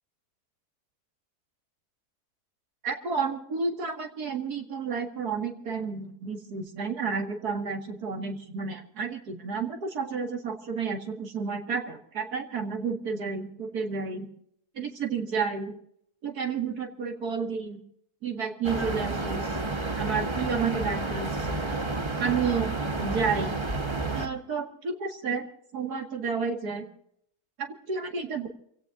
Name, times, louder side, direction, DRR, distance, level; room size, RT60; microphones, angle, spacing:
voice 1, 2.8-14.3 14.7-15.7 16.2-17.8 18.2-19.6 20.0-21.5 22.2-23.5 24.1-25.5 25.7-26.9 27.6-28.5, right 5 dB, 80° right, 2 dB, 2.5 m, -31 dB
sound 1, 18.6-24.3, right 2 dB, 20° right, 1.2 m, -30 dB
29.0 x 16.5 x 2.6 m, 0.70 s
omnidirectional pair, 1.6 m